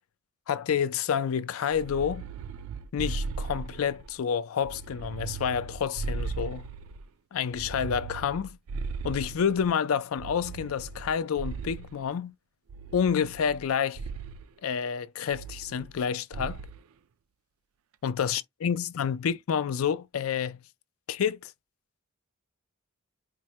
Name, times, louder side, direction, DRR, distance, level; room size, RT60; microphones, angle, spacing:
voice 1, 0.5-2.3 2.9-6.7 7.3-8.6 9.0-12.3 12.9-14.0 14.6-16.6 18.0-20.6 21.1-21.5, left 7 dB, 85° left, 0.4 m, -29 dB
sound 1, 1.7-4.1 4.6-7.1 7.5-9.7 10.2-12.1 12.7-13.7 13.9-14.4 15.3-16.0 16.3-16.8, right 4 dB, 90° right, 0.4 m, -37 dB
4.5 x 2.1 x 2.8 m
head